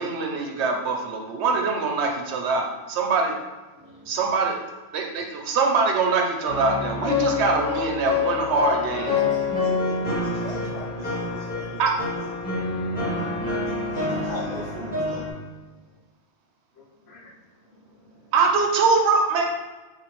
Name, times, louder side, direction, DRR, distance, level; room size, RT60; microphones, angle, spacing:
voice 1, 0.0-3.3 4.1-4.6 4.9-9.2 11.8-11.9 18.3-19.5, right 4 dB, 75° right, 2 dB, 0.8 m, -23 dB
voice 2, 3.8-4.2 5.2-5.3 7.0-7.1 7.5-7.6 14.3-14.4 16.7-18.3, equal, 70° left, -1 dB, 0.9 m, -40 dB
sound 1, 6.5-15.3, left 4 dB, 10° left, 1.3 m, -27 dB
voice 3, 9.2-12.3 13.7-15.3, right 1 dB, 50° right, -4 dB, 0.3 m, -40 dB
3.6 x 2.5 x 2.9 m, 1.2 s
omnidirectional pair, 1.2 m